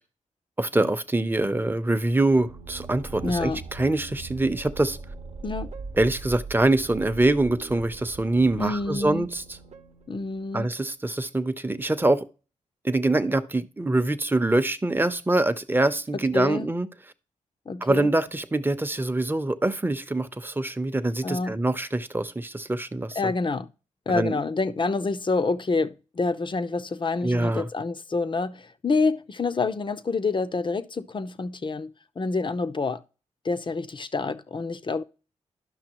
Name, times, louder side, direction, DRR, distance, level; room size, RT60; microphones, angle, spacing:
voice 1, 0.6-5.0 6.0-9.4 10.5-12.3 12.8-16.9 17.8-23.3 24.1-24.4 27.2-27.7, right 2 dB, 15° right, 0.8 m, -24 dB
sound 1, 2.1-10.7, right 4 dB, 55° right, 0.8 m, -41 dB
voice 2, 3.2-3.6 5.4-5.7 8.6-9.3 10.1-10.7 16.3-16.7 17.7-18.1 21.2-21.6 23.1-23.7 24.1-33.0 33.4-35.0, left 3 dB, 40° left, 0.7 m, -27 dB
11.5 x 5.8 x 3.0 m
cardioid pair, 55°, 13 cm